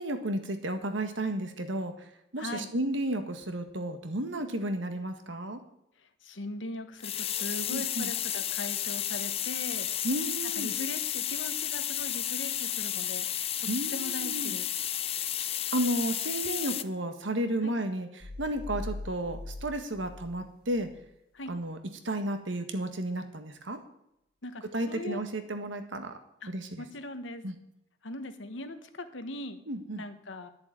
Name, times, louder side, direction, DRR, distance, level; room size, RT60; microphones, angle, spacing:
voice 1, 0.0-1.9 2.3-5.6 7.7-8.1 10.0-10.7 13.7-14.6 15.7-20.9 21.5-21.8 22.0-23.8 24.7-26.2 26.5-26.8 27.4-27.5 29.7-30.0, right 1 dB, 75° right, 7 dB, 1.6 m, -32 dB
voice 2, 2.4-2.7 6.2-9.9 10.6-13.3 13.9-14.7 17.6-17.7 21.3-21.5 24.4-25.2 26.4-26.5 26.8-27.4 28.0-29.6 30.0-30.5, left 1 dB, 75° left, 9 dB, 1.3 m, -40 dB
sound 1, 7.0-16.8, left 11 dB, 30° left, 0.5 m, -32 dB
sound 2, 18.2-21.1, left 2 dB, 50° left, 1.1 m, -41 dB
11.0 x 6.9 x 8.8 m, 0.79 s
head